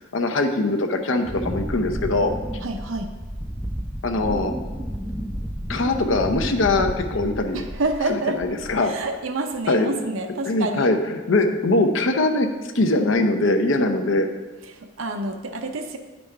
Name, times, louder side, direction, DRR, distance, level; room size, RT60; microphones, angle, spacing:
voice 1, 0.1-2.3 4.0-4.5 5.7-7.6 8.1-9.0 9.7-9.9 10.4-12.5 12.7-14.3, left 2 dB, 70° left, 5 dB, 0.7 m, -22 dB
Wind, 1.2-8.1 8.4-8.9, equal, 5° right, 0.4 m, -31 dB
voice 2, 2.6-3.1 7.5-8.4 8.8-10.9 14.7-16.0, right 2 dB, 80° right, 6 dB, 0.7 m, -28 dB
9.7 x 5.2 x 3.4 m, 1.3 s
head